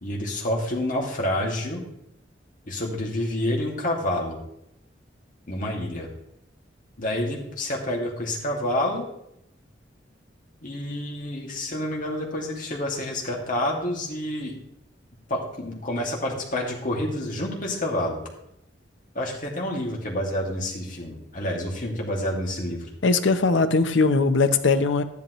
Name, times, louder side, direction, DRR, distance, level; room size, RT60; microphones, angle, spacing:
voice 1, 0.0-1.8 2.7-4.4 5.5-6.1 7.0-9.1 10.6-14.6 15.3-18.2 19.1-22.9, left 1 dB, 45° left, -1 dB, 2.3 m, -28 dB
voice 2, 23.0-25.0, left 3 dB, 85° left, 9 dB, 0.8 m, -20 dB
13.0 x 10.5 x 3.1 m, 0.78 s
head